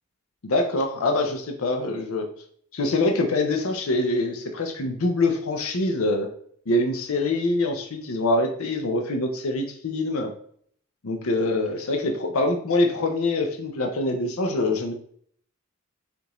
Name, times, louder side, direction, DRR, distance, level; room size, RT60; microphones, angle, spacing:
voice 1, 0.4-2.3 2.7-6.3 6.7-10.3 11.0-14.9, left 2 dB, 70° left, 3 dB, 0.6 m, -24 dB
6.5 x 2.6 x 3.0 m, 0.62 s
head